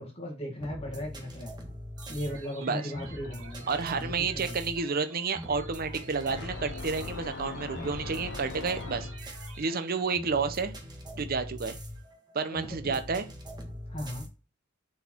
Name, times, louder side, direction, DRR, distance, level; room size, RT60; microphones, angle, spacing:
voice 1, 0.0-1.5 2.1-4.6 12.5-13.0 13.9-14.3, left 1 dB, 30° left, -1 dB, 1.9 m, -37 dB
sound 1, 0.6-14.3, equal, 20° right, 1.6 m, -42 dB
sound 2, 2.0-10.0, right 4 dB, 85° right, 2.0 m, -50 dB
voice 2, 3.7-10.7 11.2-11.8 12.3-13.3, right 4 dB, 45° right, 9 dB, 0.7 m, -30 dB
sound 3, 6.3-9.5, left 4 dB, 55° left, 0.6 m, -41 dB
6.9 x 4.6 x 4.4 m, 0.33 s
head